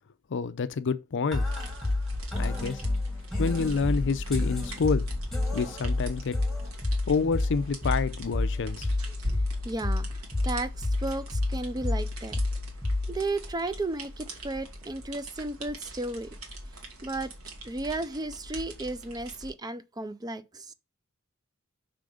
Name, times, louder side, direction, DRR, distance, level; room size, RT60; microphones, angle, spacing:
voice 1, 0.3-1.5 2.4-2.8 3.4-5.1 5.5-6.4 7.1-8.9, left 5 dB, 55° left, 0.5 m, -28 dB
sound 1, 1.3-13.3, left 2 dB, ahead, 1.7 m, -30 dB
sound 2, 1.4-19.5, equal, 70° right, 1.9 m, -41 dB
voice 2, 9.6-12.4 13.1-16.3 17.0-17.3 17.6-20.7, right 2 dB, 20° right, 0.5 m, -34 dB
5.8 x 3.8 x 5.0 m
head